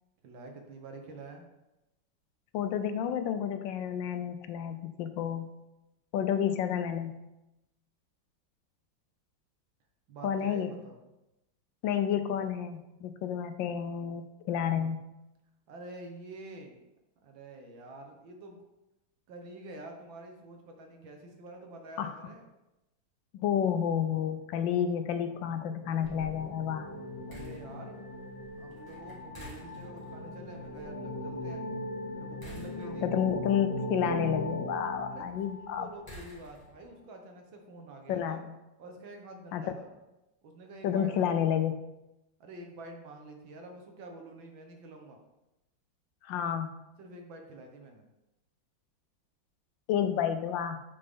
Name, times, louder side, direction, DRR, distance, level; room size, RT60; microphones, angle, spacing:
voice 1, 0.2-1.5 10.1-11.0 15.7-16.8 17.2-18.6 19.3-22.5 27.3-28.1 28.6-31.6 32.2-33.1 35.1-38.4 38.8-39.9 40.4-41.4 42.4-45.2 47.0-48.1, right 2 dB, 80° right, 3 dB, 1.9 m, -47 dB
voice 2, 2.5-5.5 6.1-7.2 10.2-10.8 11.8-15.0 22.0-22.1 23.3-26.9 32.8-35.9 38.1-38.5 39.5-39.7 40.8-41.8 46.2-46.7 49.9-50.8, left 8 dB, 75° left, 9 dB, 1.3 m, -30 dB
sound 1, 25.4-35.9, left 1 dB, 60° left, 1.4 m, -39 dB
sound 2, 26.0-36.9, equal, 10° left, 2.0 m, -54 dB
8.9 x 5.1 x 3.7 m, 0.95 s
omnidirectional pair, 2.1 m